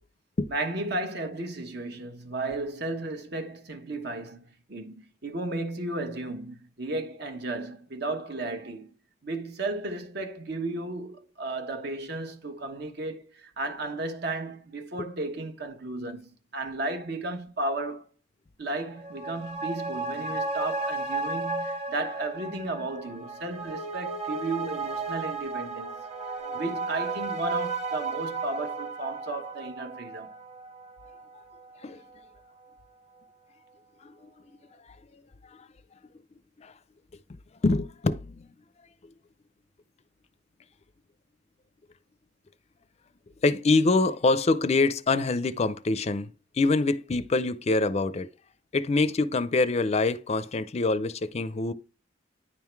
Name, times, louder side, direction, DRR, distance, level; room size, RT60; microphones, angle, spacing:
voice 1, 0.5-8.9 9.2-18.0 18.6-26.0 26.5-30.3, right 2 dB, 60° right, 1.2 m, -34 dB
sound 1, 18.9-31.8 32.1-32.2, right 3 dB, 35° right, 1.4 m, -34 dB
voice 2, 34.0-34.3 35.5-35.7 36.6-36.7 37.6-38.5 43.4-48.3 48.7-51.7, left 3 dB, 35° left, 0.5 m, -25 dB
9.9 x 3.7 x 4.6 m
head